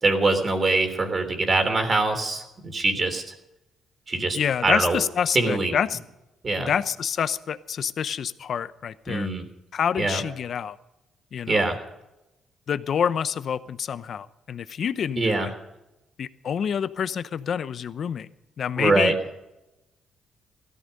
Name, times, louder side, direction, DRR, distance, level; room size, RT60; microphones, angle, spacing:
voice 1, 0.0-3.2 4.1-5.0 5.3-5.8 6.4-6.7 9.1-9.4 10.0-10.2 11.5-11.8 15.2-15.5 18.8-19.1, right 3 dB, 35° right, 6 dB, 3.4 m, -23 dB
voice 2, 4.3-6.0 6.6-9.3 9.7-10.8 11.3-11.6 12.7-15.5 16.2-18.3 18.6-19.1, left 8 dB, 60° left, 14 dB, 0.8 m, -27 dB
16.5 x 13.5 x 5.3 m, 0.92 s
cardioid pair, 90°, 0 cm